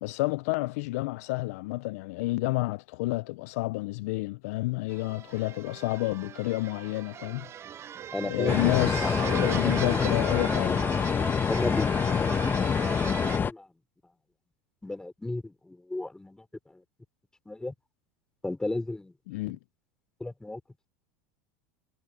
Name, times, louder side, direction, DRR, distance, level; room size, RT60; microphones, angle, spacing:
voice 1, 0.0-7.5 8.2-10.8 19.3-19.6, left 21 dB, 70° left, 0.6 m, -30 dB
sound 1, 4.9-13.4, right 9 dB, 35° right, 0.8 m, -39 dB
voice 2, 8.1-10.0 10.3-10.7 11.5-13.7 14.8-16.8 17.4-17.7 18.4-19.1 20.2-20.6, left 2 dB, 10° left, 3.3 m, -35 dB
sound 2, 8.5-13.5, left 6 dB, 25° left, 1.1 m, -26 dB
hypercardioid pair, 100°, 8 cm